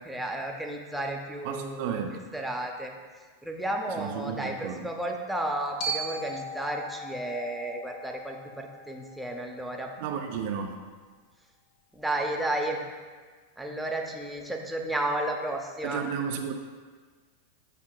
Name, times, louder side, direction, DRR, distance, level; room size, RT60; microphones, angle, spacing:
voice 1, 0.0-2.0 2.3-2.9 3.4-9.9 11.9-12.8 13.6-16.0, right 1 dB, 5° right, 1 dB, 0.6 m, -32 dB
voice 2, 1.4-2.2 4.0-4.9 10.0-10.8 15.8-16.5, right 7 dB, 65° right, 4 dB, 0.4 m, -33 dB
Glockenspiel, 5.8-9.9, right 2 dB, 55° left, 0.6 m, -38 dB
8.2 x 2.8 x 2.2 m, 1.5 s
hypercardioid pair, 110°, 0 cm